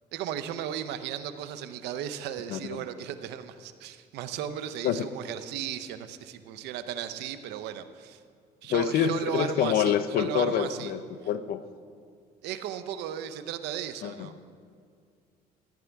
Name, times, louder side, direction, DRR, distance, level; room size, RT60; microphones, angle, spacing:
voice 1, 0.1-8.2 8.6-10.9 12.4-14.3, right 10 dB, 85° right, 11 dB, 0.6 m, -35 dB
voice 2, 2.5-2.8 4.8-5.1 8.7-11.6 14.0-14.3, left 9 dB, 65° left, 11 dB, 0.6 m, -27 dB
15.0 x 9.8 x 3.5 m, 2.2 s
cardioid pair, 110°, 17 cm